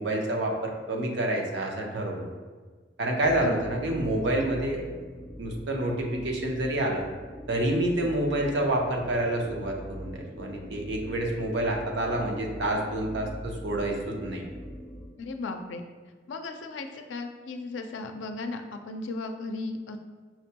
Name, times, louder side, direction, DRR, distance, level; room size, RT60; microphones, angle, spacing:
voice 1, 0.0-2.3 3.0-4.8 5.4-7.0 7.5-14.4, right 1 dB, 75° right, 0 dB, 0.7 m, -28 dB
sound 1, 3.2-15.1, equal, ahead, 1.0 m, -42 dB
voice 2, 15.2-15.8 16.3-20.0, left 3 dB, 90° left, 6 dB, 0.4 m, -36 dB
5.8 x 2.2 x 2.8 m, 1.4 s
head